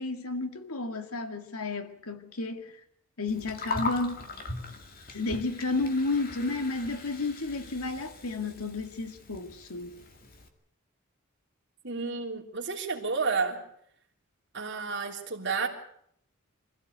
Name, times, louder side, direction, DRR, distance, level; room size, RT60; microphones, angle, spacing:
voice 1, 0.0-2.7 3.2-4.3 5.1-10.0, left 3 dB, 85° left, 2.0 m, -32 dB
Gurgling, 3.3-10.5, left 3 dB, 40° left, 2.3 m, -40 dB
voice 2, 11.8-13.6 14.5-15.7, right 4 dB, 55° right, 3.3 m, -31 dB
24.5 x 16.0 x 8.1 m
head